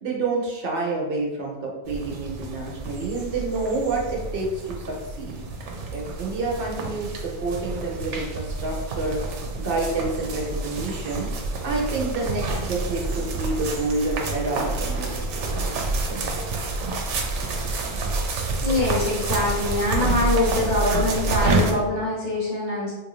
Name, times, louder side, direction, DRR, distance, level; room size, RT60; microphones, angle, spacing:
voice 1, 0.0-5.4 5.9-9.2 9.6-11.3 11.6-15.8, right 3 dB, 55° right, -1 dB, 0.9 m, -28 dB
sound 1, 1.9-21.7, right 2 dB, 85° right, 0.9 m, -28 dB
voice 2, 18.6-22.9, left 2 dB, 45° left, -7 dB, 1.2 m, -24 dB
2.9 x 2.5 x 3.0 m, 1.1 s
omnidirectional pair, 1.2 m